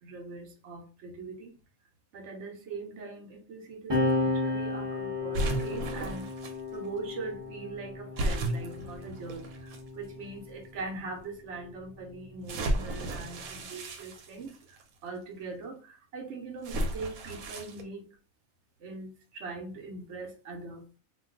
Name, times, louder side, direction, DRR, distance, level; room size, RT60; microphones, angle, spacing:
voice 1, 0.0-1.6 2.1-6.3 6.7-18.1 18.8-20.8, right 3 dB, 65° right, 0.9 m, -41 dB
sound 1, 3.9-10.8 11.8-13.6, left 3 dB, 25° right, 0.7 m, -34 dB
sound 2, 5.3-6.5 8.2-9.8 10.6-10.7 12.5-14.8 16.6-17.8, right 1 dB, 85° right, 1.1 m, -33 dB
2.5 x 2.2 x 3.6 m
omnidirectional pair, 1.5 m